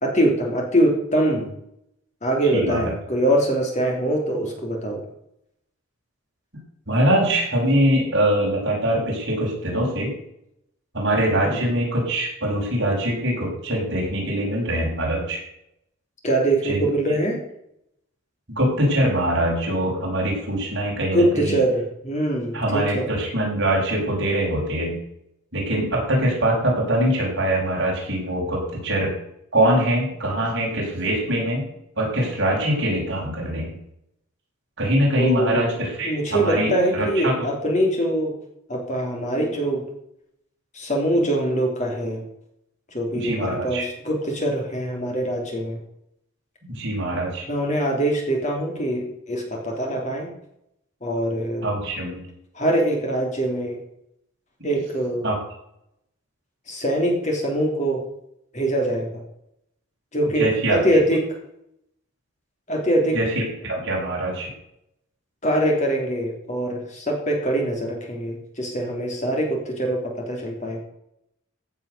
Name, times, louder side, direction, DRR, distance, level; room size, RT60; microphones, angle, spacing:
voice 1, 0.0-1.5 2.2-5.0 11.3-11.7 16.2-17.4 21.1-23.1 35.2-35.6 36.0-38.3 38.7-39.8 40.7-42.2 42.9-45.8 47.5-50.3 51.0-51.6 52.5-53.8 54.6-55.2 56.7-58.0 58.5-59.1 60.1-61.2 62.7-63.2 65.4-70.8, right 1 dB, 35° left, 0 dB, 3.2 m, -23 dB
voice 2, 2.5-2.9 6.9-10.1 10.9-15.4 16.6-16.8 18.5-21.6 22.5-25.0 25.5-29.1 29.5-31.6 32.0-33.8 34.8-37.5 43.1-43.9 46.7-47.4 51.6-52.2 54.6-54.7 55.2-55.4 60.4-61.0 63.1-64.5, right 1 dB, 55° right, -3 dB, 6.3 m, -23 dB
15.5 x 7.6 x 6.8 m, 0.78 s
head